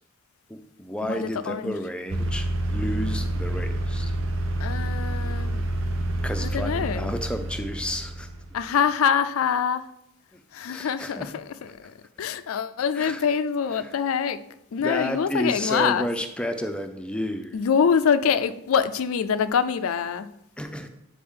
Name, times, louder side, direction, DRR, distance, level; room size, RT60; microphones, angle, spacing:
voice 1, 0.5-4.1 6.2-8.3 10.3-10.4 10.7-11.3 11.7-11.9 12.9-13.2 13.8-13.9 14.8-17.6 20.6-20.9, equal, 5° left, 0.4 m, -31 dB
voice 2, 1.0-1.8 4.6-5.7 6.4-7.1 8.5-9.8 10.5-14.4 14.7-16.1 17.5-20.3, left 7 dB, 90° left, 0.4 m, -25 dB
sound 1, 2.1-8.7, right 1 dB, 75° right, 0.7 m, -28 dB
8.6 x 4.2 x 3.7 m
head